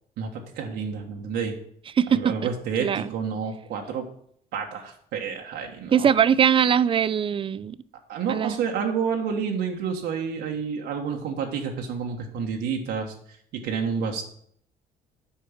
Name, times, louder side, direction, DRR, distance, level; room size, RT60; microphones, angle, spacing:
voice 1, 0.2-1.5 2.1-4.1 4.5-6.1 8.1-14.2, right 6 dB, 80° right, 1.4 m, -29 dB
voice 2, 2.0-2.3 2.8-3.1 5.9-7.8 8.3-8.6, right 8 dB, 30° right, 0.4 m, -21 dB
8.6 x 4.7 x 7.1 m
cardioid pair, 110°, 17 cm